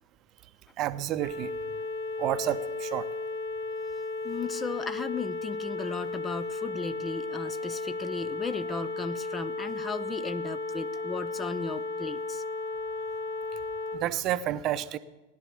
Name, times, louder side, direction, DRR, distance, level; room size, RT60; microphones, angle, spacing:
voice 1, 0.8-1.5 2.2-3.0 13.9-15.0, right 12 dB, 35° right, 13 dB, 0.7 m, -30 dB
sound 1, 1.2-14.0, left 3 dB, 80° left, 2.6 m, -34 dB
voice 2, 4.2-12.4, left 4 dB, 15° left, 14 dB, 0.5 m, -36 dB
16.5 x 11.0 x 7.1 m, 1.1 s
figure-of-eight pair, 90°, 0 cm